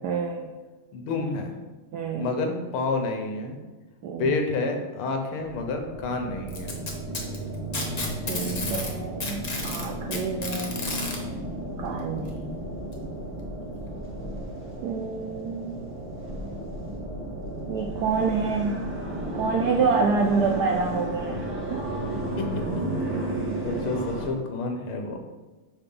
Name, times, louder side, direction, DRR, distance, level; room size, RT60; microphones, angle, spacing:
voice 1, 0.0-0.5 1.9-2.3 4.0-4.3 8.3-10.8 11.8-12.5 14.8-15.8 17.7-18.9 19.3-21.4 21.7-21.9, right 5 dB, 80° right, 2 dB, 0.9 m, -27 dB
voice 2, 0.9-1.5 2.2-3.6 4.2-6.7 22.4-22.9 23.2-23.3 23.6-25.2, left 3 dB, 80° left, 4 dB, 1.8 m, -29 dB
sound 1, 5.3-24.3, right 1 dB, 5° right, 1.1 m, -33 dB
Packing tape duct tape, 6.5-8.9 9.2-11.2 12.3-12.4 12.9-13.0 13.9-14.0, left 3 dB, 60° left, 0.4 m, -32 dB
5.0 x 4.9 x 5.4 m, 1.2 s
omnidirectional pair, 2.3 m